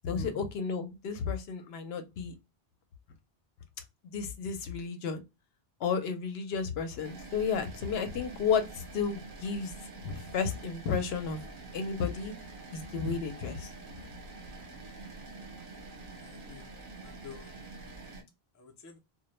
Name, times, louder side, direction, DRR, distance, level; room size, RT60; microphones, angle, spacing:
voice 1, 0.0-2.3 4.0-5.2 5.8-9.7 10.0-11.4 11.7-12.3 12.7-13.7, left 6 dB, 80° left, 0.8 m, -32 dB
sound 1, 7.0-18.2, right 3 dB, 55° right, 0.8 m, -46 dB
voice 2, 16.1-16.7 17.0-17.6 18.5-19.0, left 5 dB, 25° left, 0.4 m, -48 dB
2.1 x 2.1 x 2.9 m
omnidirectional pair, 1.0 m